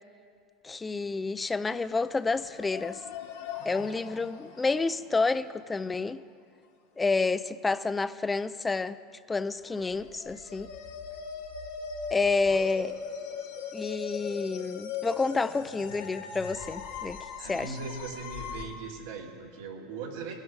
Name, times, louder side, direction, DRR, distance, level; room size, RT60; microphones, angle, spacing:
voice 1, 0.6-3.0 3.7-6.2 7.0-9.0 9.3-10.7 12.1-13.0 13.7-17.8, left 3 dB, 15° left, 14 dB, 0.4 m, -29 dB
sound 1, 1.8-1.9 2.3-5.7 9.6-18.7, left 6 dB, 85° left, 1.7 m, -40 dB
voice 2, 17.4-20.3, right 4 dB, 80° right, -1 dB, 2.3 m, -39 dB
18.5 x 10.5 x 5.0 m, 2.3 s
supercardioid pair, 115°, 0 cm